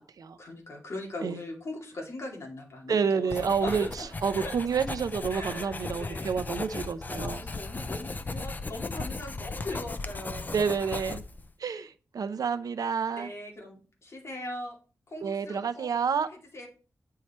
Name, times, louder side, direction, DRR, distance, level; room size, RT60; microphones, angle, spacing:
voice 1, 0.4-4.6 5.3-6.4 7.2-10.5 13.1-14.8 15.1-15.9 16.5-16.7, left 1 dB, 45° left, 0 dB, 2.4 m, -40 dB
voice 2, 2.9-7.4 10.5-11.2 11.6-13.3 15.2-16.3, right 6 dB, 70° right, 11 dB, 0.7 m, -29 dB
Writing, 3.3-11.5, left 3 dB, 30° left, 0.5 m, -36 dB
9.5 x 4.7 x 4.3 m, 0.37 s
wide cardioid pair, 170°, 6 cm